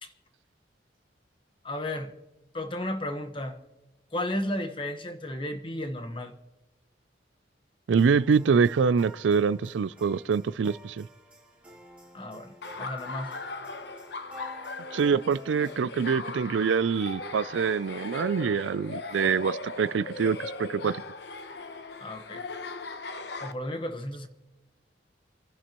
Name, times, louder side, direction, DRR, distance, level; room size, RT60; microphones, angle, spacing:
voice 1, 1.6-2.1 2.5-3.6 4.1-6.3 12.1-13.3 22.0-22.4 23.4-24.3, left 1 dB, 30° left, 1.2 m, -33 dB
voice 2, 7.9-11.1 14.9-21.0, right 6 dB, 90° right, 0.4 m, -25 dB
sound 1, 8.0-15.8, right 1 dB, 5° right, 3.0 m, -51 dB
Laughter, 12.6-23.5, left 3 dB, 65° left, 0.9 m, -38 dB
29.5 x 11.0 x 3.0 m
head